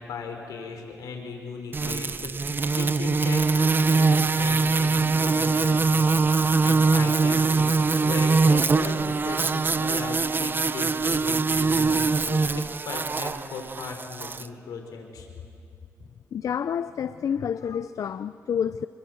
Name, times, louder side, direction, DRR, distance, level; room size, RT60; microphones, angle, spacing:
voice 1, 0.1-15.3, left 4 dB, 85° left, 4 dB, 4.3 m, -37 dB
sound 1, 1.7-14.5, right 4 dB, 35° right, 0.8 m, -23 dB
voice 2, 16.3-18.9, left 8 dB, 65° left, 13 dB, 0.6 m, -29 dB
27.0 x 23.5 x 7.9 m, 2.5 s
cardioid pair, 80°, 6 cm